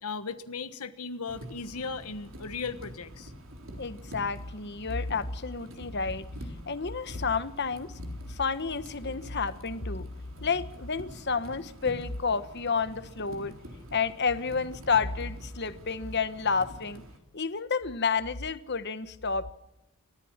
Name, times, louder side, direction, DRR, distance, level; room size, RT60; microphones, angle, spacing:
voice 1, 0.0-3.3, left 4 dB, 90° left, 10 dB, 1.3 m, -37 dB
sound 1, 1.3-17.2, equal, 60° right, 3.8 m, -46 dB
voice 2, 3.8-6.3 6.7-8.0 8.3-10.1 10.4-13.5 13.9-17.0 17.3-19.5, left 5 dB, 50° left, 13 dB, 1.2 m, -30 dB
30.0 x 14.5 x 7.3 m, 0.91 s
head